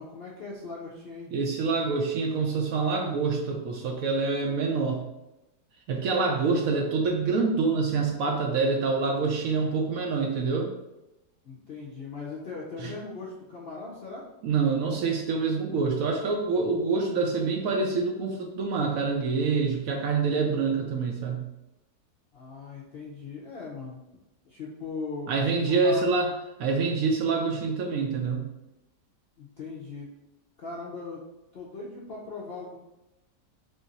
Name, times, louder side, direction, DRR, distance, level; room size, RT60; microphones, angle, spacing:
voice 1, 0.0-1.3 11.4-14.3 22.3-24.0 24.4-25.4 25.7-26.0 29.4-30.1 30.6-31.2 31.5-32.8, left 3 dB, 65° left, -4 dB, 0.6 m, -39 dB
voice 2, 1.3-5.0 5.9-10.7 12.8-12.9 14.4-21.4 25.3-26.3 26.6-28.4, right 4 dB, 70° right, 2 dB, 0.9 m, -26 dB
3.7 x 2.5 x 3.9 m, 0.94 s
omnidirectional pair, 1.7 m